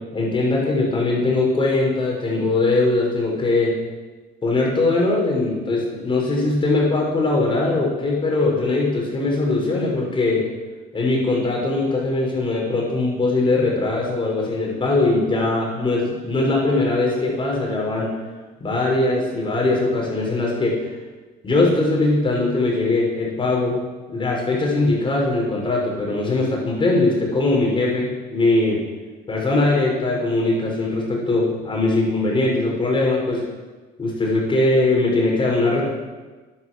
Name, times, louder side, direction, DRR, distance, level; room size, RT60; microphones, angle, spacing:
voice 1, 0.1-3.8 4.4-10.4 10.9-18.1 18.6-20.9 21.4-23.8 24.1-28.8 29.3-33.4 34.0-35.8, left 2 dB, 30° left, -2 dB, 5.9 m, -21 dB
11.5 x 11.0 x 7.8 m, 1.3 s
cardioid pair, 105°, 17 cm